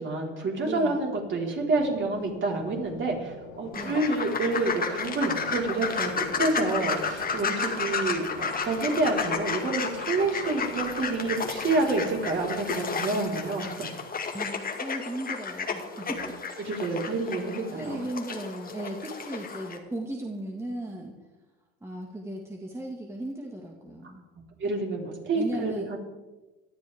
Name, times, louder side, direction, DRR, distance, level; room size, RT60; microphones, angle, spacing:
voice 1, 0.0-13.7 16.0-16.2 16.6-18.0 24.6-26.0, right 2 dB, 40° right, -2 dB, 4.5 m, -28 dB
voice 2, 0.6-1.0 3.7-4.0 14.3-16.4 17.7-21.2 21.8-24.2 25.3-25.9, right 1 dB, 10° right, 0 dB, 1.9 m, -36 dB
sound 1, 1.3-13.4, left 5 dB, 75° left, 3.3 m, -46 dB
sound 2, 3.7-19.8, left 5 dB, 30° left, 2.0 m, -32 dB
18.5 x 12.5 x 3.6 m, 1.1 s
supercardioid pair, 95°, 31 cm